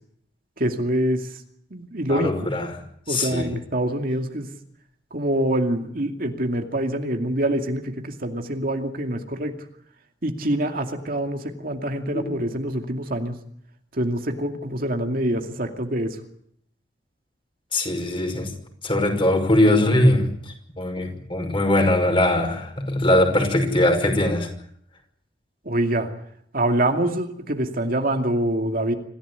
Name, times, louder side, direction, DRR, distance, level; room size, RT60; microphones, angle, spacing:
voice 1, 0.6-1.2 1.7-2.5 3.1-4.5 5.1-9.5 10.2-13.3 13.9-16.2 25.7-26.1 26.5-28.9, right 1 dB, 50° right, 4 dB, 2.5 m, -25 dB
voice 2, 2.1-2.7 3.1-3.5 12.1-12.4 17.7-18.5 18.8-20.3 20.8-24.5, left 1 dB, 30° left, 4 dB, 5.6 m, -21 dB
26.0 x 16.0 x 9.5 m, 0.70 s
head